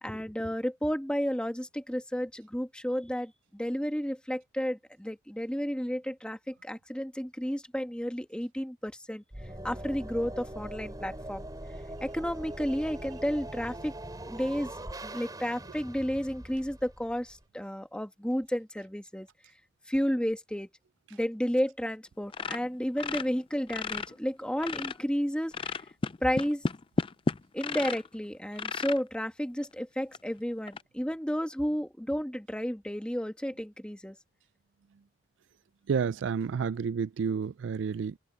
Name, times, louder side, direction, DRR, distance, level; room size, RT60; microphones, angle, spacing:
voice 1, 0.0-9.2 9.6-11.4 12.0-13.9 14.3-14.7 15.0-19.3 19.9-20.7 21.1-25.8 26.2-26.6 27.5-34.2, equal, 5° left, 1.7 m, -32 dB
sound 1, 9.3-17.4, right 1 dB, 20° right, 4.6 m, -42 dB
sound 2, 22.3-24.1 24.4-25.1 25.5-28.1 28.6-29.0 29.6-29.7 30.1-30.2 30.7-30.8, left 4 dB, 30° left, 0.4 m, -33 dB
voice 2, 35.9-38.2, right 6 dB, 70° right, 0.4 m, -30 dB
open air
head